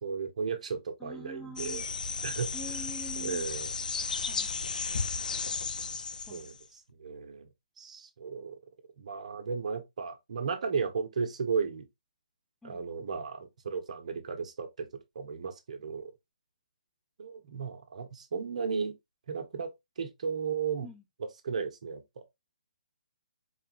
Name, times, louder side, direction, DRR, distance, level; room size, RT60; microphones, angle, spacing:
voice 1, 0.0-1.8 2.2-2.5 3.2-3.7 5.9-6.0 6.3-7.5 7.8-8.6 9.0-11.9 12.6-14.9 15.1-16.1 17.2-18.9 19.3-20.9 21.2-22.3, right 5 dB, 60° right, 1.0 m, -35 dB
voice 2, 1.0-1.9 2.5-3.4 4.3-4.6 6.3-6.5 12.6-12.8 20.8-21.0, equal, 5° left, 0.4 m, -45 dB
sound 1, 1.6-6.6, left 5 dB, 85° left, 0.4 m, -34 dB
4.5 x 2.5 x 2.9 m
hypercardioid pair, 160°, 4 cm